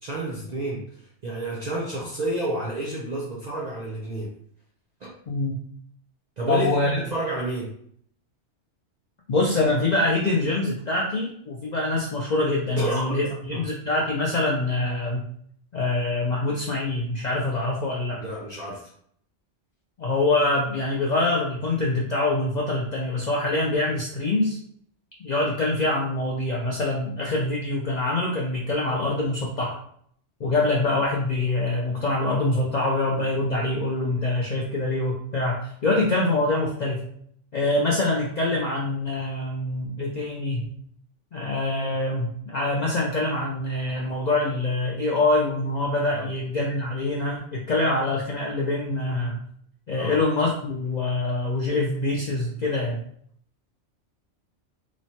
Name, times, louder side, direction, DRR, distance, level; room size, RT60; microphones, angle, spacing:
voice 1, 0.0-4.3 5.0-5.1 6.4-7.7 12.8-13.2 13.5-13.6 18.1-18.9 46.1-46.3 50.0-50.2, right 2 dB, 55° right, -3 dB, 0.5 m, -30 dB
voice 2, 6.5-7.0 9.3-15.3 15.7-18.2 20.0-24.6 25.2-29.8 30.4-37.1 37.5-40.7 41.3-49.4 49.9-53.0, left 2 dB, 60° left, -3 dB, 0.4 m, -25 dB
3.0 x 2.1 x 2.7 m, 0.64 s
omnidirectional pair, 1.2 m